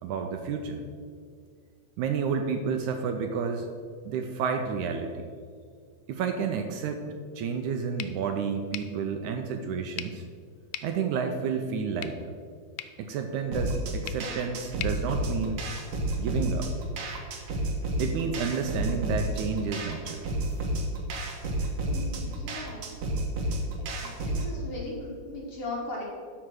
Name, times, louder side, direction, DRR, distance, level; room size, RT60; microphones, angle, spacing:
voice 1, 0.0-0.8 2.0-3.7 4.1-5.3 6.1-7.0 7.4-10.2 10.8-12.3 13.0-15.7 16.2-16.7 18.0-20.3, right 6 dB, 80° right, 5 dB, 1.9 m, -30 dB
sound 1, 8.0-16.0, left 12 dB, 80° left, 1.8 m, -44 dB
sound 2, 13.5-24.5, right 1 dB, 60° right, 1.9 m, -31 dB
voice 2, 21.8-22.9 23.5-23.6 23.9-26.0, left 2 dB, 50° left, -3 dB, 2.1 m, -38 dB
12.0 x 5.0 x 6.2 m, 2.1 s
omnidirectional pair, 3.8 m